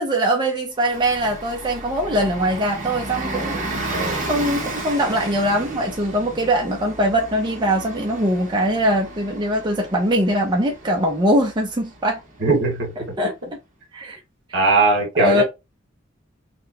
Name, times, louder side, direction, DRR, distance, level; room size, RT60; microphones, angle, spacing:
voice 1, 0.0-12.2 13.0-13.4 13.9-14.2 14.5-14.6 15.2-15.4, equal, 20° right, 0.5 m, -22 dB
Bus, 0.8-13.1, right 2 dB, 40° right, 1.2 m, -33 dB
voice 2, 12.4-12.9 14.5-15.4, right 3 dB, 60° right, 1.9 m, -19 dB
4.1 x 2.1 x 2.7 m
head